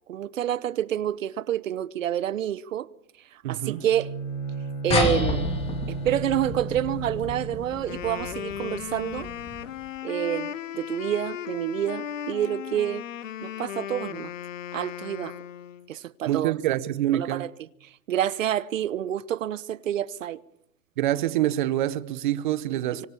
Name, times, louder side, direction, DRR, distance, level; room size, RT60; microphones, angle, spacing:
voice 1, 0.1-2.9 3.3-4.1 4.8-5.5 5.9-9.3 10.0-13.0 13.4-14.3 14.7-15.3 15.9-16.5 17.1-17.5 18.1-20.4, right 11 dB, 60° right, 1.0 m, -28 dB
voice 2, 3.4-3.8 16.3-17.5 21.0-23.1, right 13 dB, 35° right, 1.0 m, -26 dB
Bowed string instrument, 3.7-7.8, right 3 dB, 30° left, 6.2 m, -34 dB
sound 1, 4.9-9.8, left 3 dB, 15° left, 2.7 m, -30 dB
Wind instrument woodwind instrument, 7.7-15.9, left 10 dB, 55° left, 1.4 m, -36 dB
25.0 x 25.0 x 7.1 m
hypercardioid pair, 165°, 45 cm